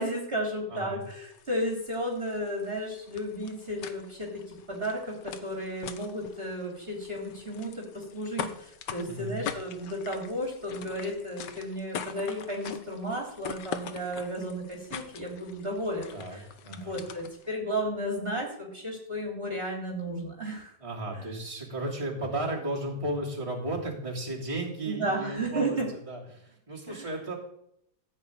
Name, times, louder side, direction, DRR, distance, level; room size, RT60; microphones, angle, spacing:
voice 1, 0.0-20.7 21.1-21.4 24.8-25.9 26.9-27.1, equal, 35° right, -1 dB, 3.1 m, -33 dB
voice 2, 0.7-1.0 9.1-9.4 16.1-17.0 20.8-25.8 26.1-27.3, right 1 dB, 15° right, -4 dB, 3.1 m, -34 dB
sound 1, 1.0-17.5, left 8 dB, 90° left, 1.6 m, -43 dB
15.5 x 5.6 x 8.7 m, 0.74 s
omnidirectional pair, 1.8 m